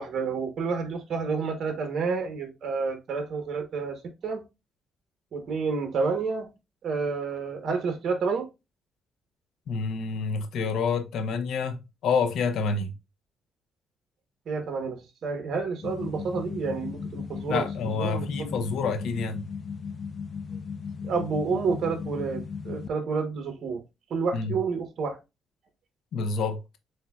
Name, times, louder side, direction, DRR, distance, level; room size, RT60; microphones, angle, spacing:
voice 1, 0.0-4.4 5.3-6.5 6.8-8.4 14.5-17.6 18.0-18.7 21.0-23.8 24.1-25.2, right 5 dB, 60° right, 1.0 m, -29 dB
voice 2, 9.7-12.9 17.5-19.4 24.3-24.6 26.1-26.6, left 5 dB, 75° left, 0.8 m, -28 dB
sound 1, 15.8-22.9, left 6 dB, 45° left, 0.6 m, -36 dB
7.7 x 2.7 x 2.3 m
cardioid pair, 90°, 0 cm